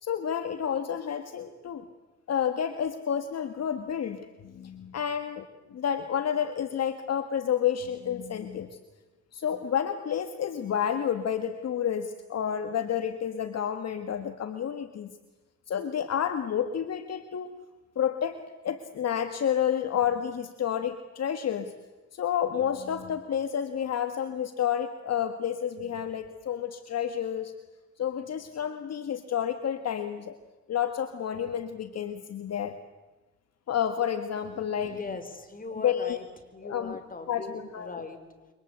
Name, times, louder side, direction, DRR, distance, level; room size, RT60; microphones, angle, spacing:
voice 1, 0.0-1.8 2.3-8.8 9.3-15.1 15.7-17.6 18.0-18.4 18.6-21.7 22.1-27.5 28.0-30.4 30.7-32.8 33.7-35.0 35.8-36.2 36.6-37.0 37.3-37.9, left 9 dB, 55° left, 8 dB, 1.8 m, -30 dB
voice 2, 34.6-36.3 36.5-38.5, left 3 dB, 30° left, 8 dB, 4.5 m, -40 dB
28.5 x 24.5 x 8.2 m, 1.2 s
cardioid pair, 90°, 30 cm